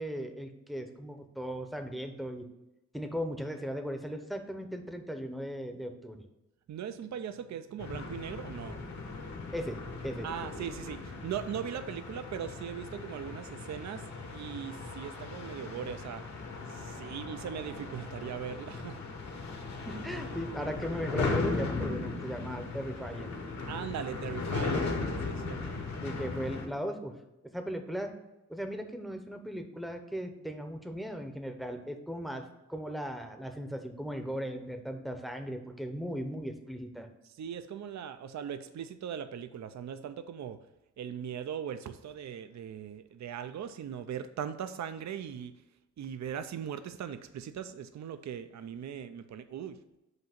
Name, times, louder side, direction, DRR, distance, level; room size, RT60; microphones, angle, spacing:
voice 1, 0.0-2.5 2.9-6.2 9.5-10.3 19.8-23.3 26.0-27.2 27.5-28.1 28.5-37.1, equal, ahead, 6 dB, 0.7 m, -37 dB
voice 2, 6.7-8.8 10.2-16.2 16.7-19.0 23.7-25.0 25.2-25.8 37.4-40.6 41.0-45.6 46.0-50.0, right 8 dB, 70° right, 11 dB, 0.4 m, -39 dB
sound 1, 7.8-26.7, left 3 dB, 65° left, 1.1 m, -37 dB
7.8 x 2.8 x 5.8 m, 0.96 s
wide cardioid pair, 130°, 30 cm